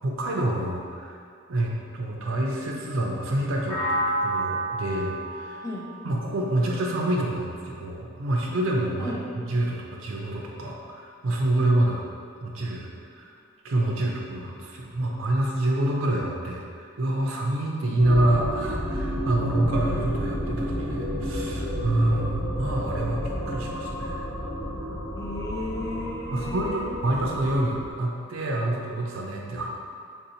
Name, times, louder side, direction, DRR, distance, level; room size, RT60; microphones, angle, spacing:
voice 1, 0.0-1.1 1.5-5.6 6.0-12.0 12.4-12.9 13.2-13.3 13.6-24.3 26.3-29.7, right 1 dB, 80° right, -1 dB, 0.5 m, -27 dB
sound 1, 3.7-7.6, right 1 dB, 30° left, 0.8 m, -31 dB
sound 2, 18.0-27.9, equal, 75° left, 1.0 m, -31 dB
voice 2, 25.1-26.9, left 2 dB, 15° left, -4 dB, 0.4 m, -34 dB
3.7 x 2.7 x 2.7 m, 2.3 s
head